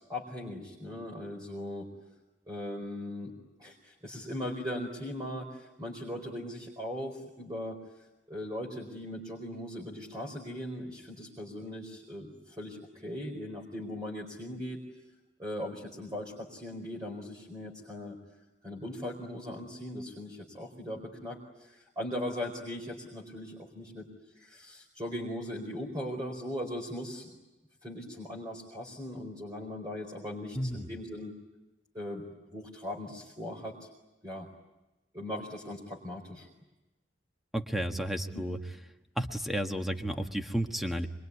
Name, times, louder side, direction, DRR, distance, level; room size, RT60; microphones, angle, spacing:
voice 1, 0.1-1.9 2.5-3.3 3.6-7.8 8.3-14.8 15.4-18.1 18.6-24.1 24.4-27.3 27.8-31.3 31.9-32.2 32.5-33.9 34.2-34.5 35.1-36.5 38.3-38.4, left 1 dB, 20° right, -1 dB, 4.5 m, -39 dB
voice 2, 30.5-30.9 37.5-38.6 39.2-41.1, equal, ahead, 5 dB, 1.5 m, -32 dB
26.0 x 23.0 x 9.6 m, 1.0 s
head